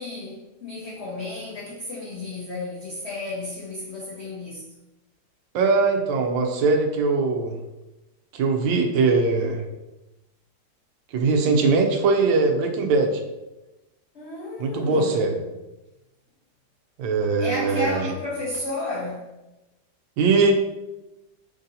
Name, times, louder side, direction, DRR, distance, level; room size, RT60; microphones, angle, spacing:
voice 1, 0.0-4.7 14.1-15.4 17.4-19.3, left 2 dB, 55° left, 0.7 m, -32 dB
voice 2, 5.5-7.6 8.3-9.6 11.1-13.2 14.6-15.3 17.0-18.1 20.2-20.5, right 4 dB, 85° right, 1.4 m, -21 dB
3.7 x 2.7 x 3.9 m
omnidirectional pair, 2.0 m